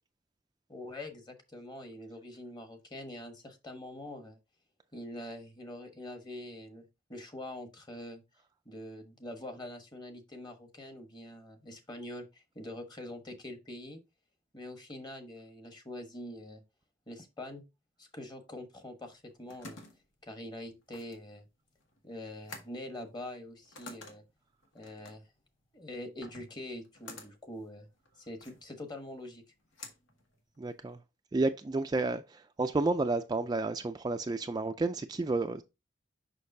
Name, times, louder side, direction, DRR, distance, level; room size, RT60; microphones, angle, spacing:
voice 1, 0.7-4.4 4.9-8.2 8.6-14.0 14.5-16.6 17.1-17.6 18.0-19.8 20.2-21.5 22.0-24.2 24.7-25.2 25.7-27.9 28.2-29.4, left 1 dB, 20° left, 1.1 m, -44 dB
sound 1, 19.0-31.0, left 3 dB, 90° left, 1.7 m, -52 dB
voice 2, 30.6-31.0 31.3-35.6, right 3 dB, 20° right, 0.3 m, -31 dB
6.4 x 5.7 x 2.7 m
head